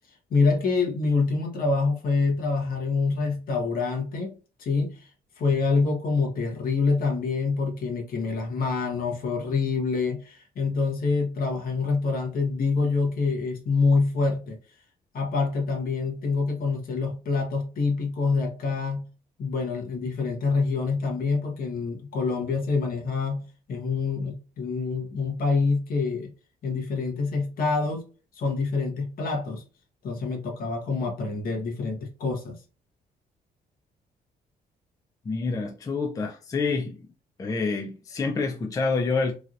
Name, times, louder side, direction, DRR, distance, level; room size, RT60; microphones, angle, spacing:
voice 1, 0.3-4.3 4.6-5.0 5.4-14.6 15.1-19.1 19.4-23.4 23.7-26.3 26.6-28.0 28.3-29.6 30.0-32.6, left 4 dB, 60° left, 1.1 m, -26 dB
voice 2, 35.3-37.0 37.4-39.3, left 4 dB, 20° left, 0.4 m, -27 dB
3.1 x 2.6 x 2.4 m
cardioid pair, 140°, 17 cm